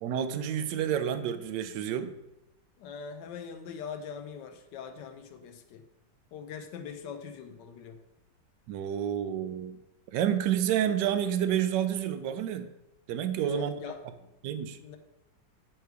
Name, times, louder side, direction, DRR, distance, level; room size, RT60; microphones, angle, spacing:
voice 1, 0.0-2.1 8.7-9.8 10.1-12.7 13.1-13.7 14.4-14.8, right 9 dB, 75° right, 10 dB, 1.2 m, -29 dB
voice 2, 2.8-5.8 6.3-8.0 13.4-14.3 14.8-15.0, left 7 dB, 75° left, 7 dB, 1.2 m, -42 dB
9.2 x 3.2 x 4.6 m, 0.92 s
omnidirectional pair, 2.0 m